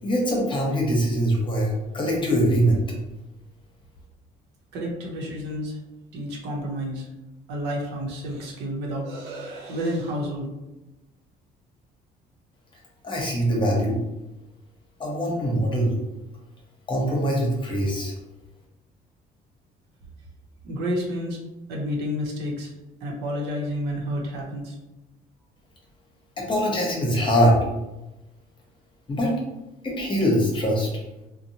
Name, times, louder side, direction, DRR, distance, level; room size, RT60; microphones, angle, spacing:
voice 1, 0.0-2.8 13.0-14.0 15.0-15.9 16.9-18.1 26.4-27.7 29.1-29.3 29.8-30.9, equal, 30° left, -2 dB, 0.9 m, -22 dB
voice 2, 4.7-5.8 6.1-7.0 7.5-10.5 20.6-21.4 21.7-22.7 23.0-24.8, equal, 90° right, -1 dB, 0.7 m, -30 dB
2.7 x 2.1 x 2.7 m, 0.99 s
cardioid pair, 110°, 17 cm